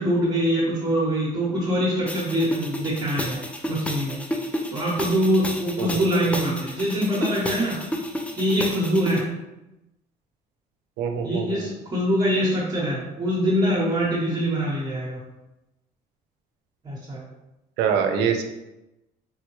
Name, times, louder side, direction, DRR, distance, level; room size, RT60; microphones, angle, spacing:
voice 1, 0.0-3.4 3.7-4.2 4.7-7.8 8.4-9.3 11.2-15.2 16.8-17.2, equal, 25° right, -6 dB, 0.8 m, -24 dB
sound 1, 2.1-9.2, left 1 dB, 10° left, 0.3 m, -32 dB
voice 2, 11.0-11.7 17.8-18.4, right 7 dB, 85° right, 5 dB, 0.5 m, -24 dB
3.7 x 2.1 x 3.0 m, 0.96 s
cardioid pair, 110°, 17 cm